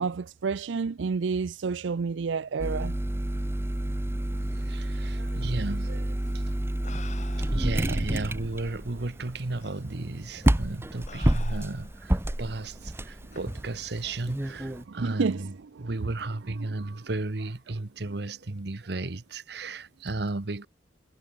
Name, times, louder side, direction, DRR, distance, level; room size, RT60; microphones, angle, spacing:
voice 1, 0.0-2.9 7.9-8.0 14.9-15.5 15.8-15.9 16.6-17.0, right 5 dB, 85° right, 0.5 m, -30 dB
sound 1, 2.6-14.8, right 1 dB, 15° right, 0.7 m, -29 dB
voice 2, 4.5-6.2 6.5-6.6 7.4-15.5 15.8-20.7, right 2 dB, 60° right, 1.1 m, -34 dB
sound 2, 6.2-6.3 6.8-7.8 8.7-8.8 9.6-9.8 10.4-10.6 11.1-12.0 13.3-13.5, left 5 dB, 40° left, 3.2 m, -47 dB
head